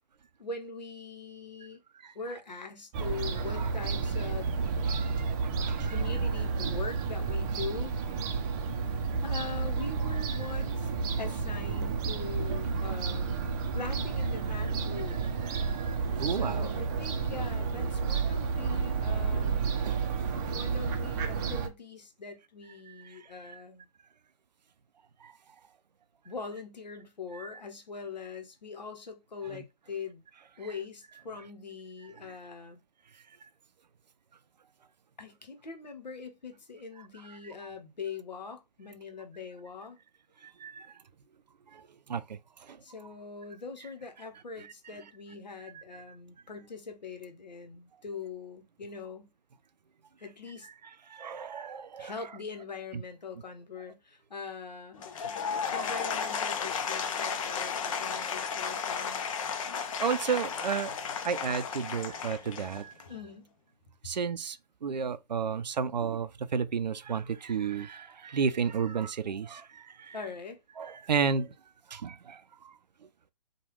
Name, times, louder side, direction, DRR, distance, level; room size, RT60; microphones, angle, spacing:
voice 1, 0.4-1.8 2.1-4.5 5.9-8.3 9.2-10.9 11.2-13.5 13.7-15.3 16.2-19.7 20.5-23.9 26.2-30.2 30.6-32.8 35.2-40.0 42.8-49.3 50.2-50.7 52.0-55.1 55.7-59.3 63.1-63.5 70.1-70.6, left 4 dB, 90° left, 0.8 m, -42 dB
Fowl / Gull seagull, 2.9-21.7, right 5 dB, 30° right, 0.5 m, -31 dB
voice 2, 4.9-5.3 5.6-6.0 15.5-16.7 19.8-20.0 20.5-20.6 23.5-23.6 25.2-25.3 27.3-27.5 29.5-29.6 40.4-40.9 41.7-42.8 51.1-52.1 52.9-53.0 55.2-55.3 60.0-61.0 61.2-62.9 64.0-70.2 70.8-71.5 71.9-72.7, right 6 dB, 90° right, 0.4 m, -33 dB
Applause / Crowd, 54.9-63.1, left 6 dB, 50° left, 0.6 m, -34 dB
3.1 x 2.3 x 3.0 m
figure-of-eight pair, 125°, 21 cm